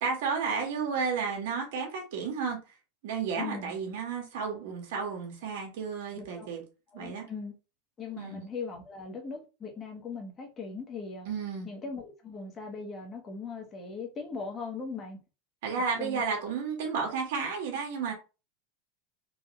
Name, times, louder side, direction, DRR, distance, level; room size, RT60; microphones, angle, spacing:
voice 1, 0.0-2.6 3.0-6.6 6.9-7.3 8.2-8.4 11.2-11.7 15.6-18.1, right 5 dB, 70° right, 1.5 m, -32 dB
voice 2, 3.3-3.7 6.1-6.5 6.9-7.5 8.0-11.3 11.6-15.2 16.0-16.2, left 4 dB, 25° left, 1.2 m, -39 dB
3.9 x 2.6 x 3.2 m
supercardioid pair, 145°, 0 cm